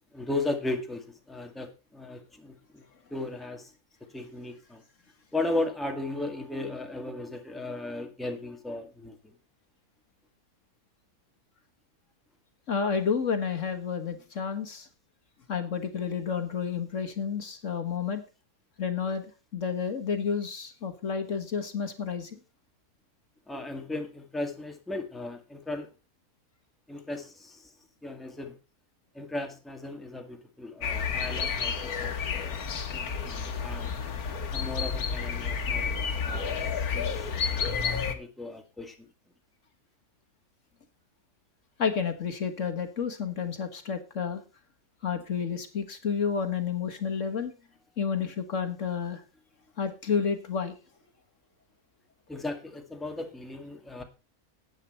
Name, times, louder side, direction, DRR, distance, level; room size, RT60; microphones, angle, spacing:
voice 1, 0.1-2.8 3.1-3.7 4.1-4.8 5.3-9.2 23.5-25.9 26.9-27.6 28.0-28.5 29.1-32.6 32.9-33.9 34.5-36.5 36.9-37.1 37.5-38.9 52.3-54.0, left 2 dB, ahead, 4 dB, 1.7 m, -36 dB
voice 2, 12.7-14.9 15.5-18.2 18.8-22.4 32.0-32.1 33.2-33.3 41.8-44.4 45.0-47.5 48.0-49.2 49.8-50.7, left 6 dB, 60° left, 8 dB, 1.6 m, -30 dB
sound 1, 30.8-38.2, left 6 dB, 85° left, 1.7 m, -30 dB
13.0 x 9.1 x 4.3 m, 0.32 s
omnidirectional pair, 1.5 m